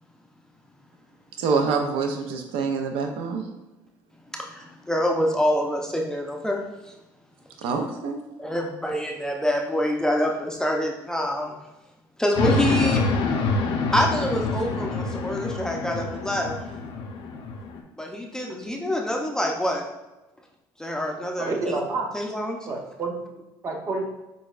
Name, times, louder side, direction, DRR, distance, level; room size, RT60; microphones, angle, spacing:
voice 1, 1.4-3.5 7.6-8.2, right 5 dB, 75° right, 4 dB, 0.5 m, -26 dB
voice 2, 4.3-6.9 8.4-11.6 12.2-13.0 13.9-16.5 18.0-19.8 20.8-21.5 22.1-22.6, equal, 5° left, 1 dB, 0.5 m, -26 dB
sound 1, 12.4-17.8, left 3 dB, 60° left, 0.6 m, -26 dB
voice 3, 21.4-22.1 22.7-24.1, right 3 dB, 35° right, 1 dB, 0.8 m, -29 dB
6.1 x 2.2 x 2.4 m, 1.0 s
cardioid pair, 100°, 9 cm